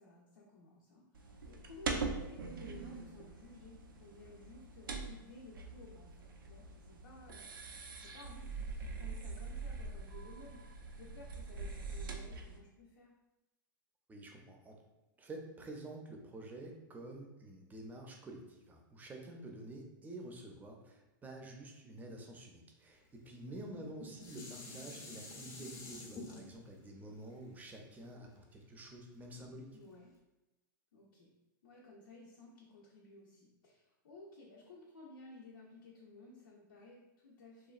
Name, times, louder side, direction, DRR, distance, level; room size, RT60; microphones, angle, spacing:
voice 1, 0.0-13.1 23.4-23.8 29.7-30.1 30.9-31.3 31.6-37.7, left 2 dB, 85° left, -4 dB, 0.5 m, -56 dB
sound 1, 1.1-12.6, right 4 dB, 85° right, 0.4 m, -43 dB
voice 2, 14.1-14.8 15.2-29.8, right 1 dB, 15° right, 2 dB, 0.5 m, -49 dB
Dishes pots and pans, 23.6-28.9 29.4-29.5, left 2 dB, 25° left, 0.6 m, -50 dB
2.9 x 2.2 x 2.4 m, 1.0 s
hypercardioid pair, 110°, 11 cm